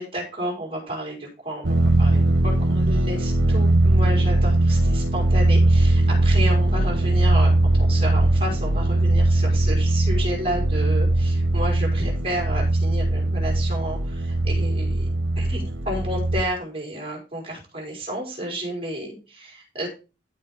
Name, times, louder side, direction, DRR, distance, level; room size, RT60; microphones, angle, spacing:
voice 1, 0.0-15.0 15.4-19.9, equal, 30° right, -2 dB, 4.9 m, -31 dB
sound 1, 1.6-16.4, right 1 dB, 80° right, 1.1 m, -20 dB
15.0 x 5.4 x 3.7 m, 0.31 s
head